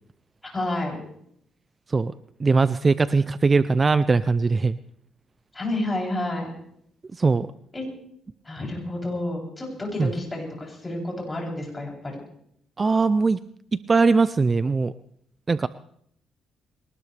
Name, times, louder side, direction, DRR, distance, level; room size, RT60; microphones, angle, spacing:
voice 1, 0.4-1.0 5.5-6.5 7.7-7.8 8.4-12.1, left 1 dB, 20° left, -1 dB, 7.7 m, -30 dB
voice 2, 2.4-4.8 7.1-7.5 10.0-10.1 12.8-13.4 13.7-14.9 15.5-15.7, right 4 dB, 30° right, 14 dB, 0.5 m, -20 dB
22.0 x 19.0 x 3.4 m, 0.69 s
cardioid pair, 90°, 0 cm